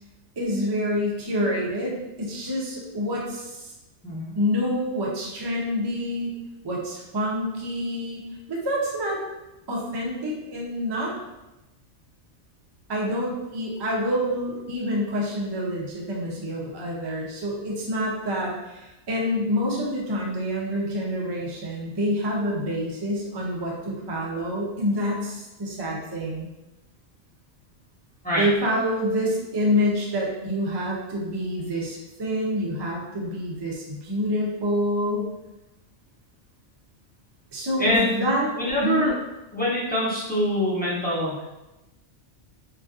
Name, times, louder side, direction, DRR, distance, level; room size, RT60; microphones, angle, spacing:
voice 1, 0.4-3.7 4.3-6.3 6.6-8.2 8.5-9.2 9.7-11.1 12.9-26.5 28.3-35.3 37.5-38.5 38.8-39.1, equal, 45° right, -3 dB, 0.3 m, -27 dB
voice 2, 37.8-38.2 38.6-39.1 39.5-41.5, left 1 dB, 10° left, -9 dB, 0.6 m, -24 dB
3.1 x 2.5 x 2.3 m, 0.98 s
omnidirectional pair, 1.3 m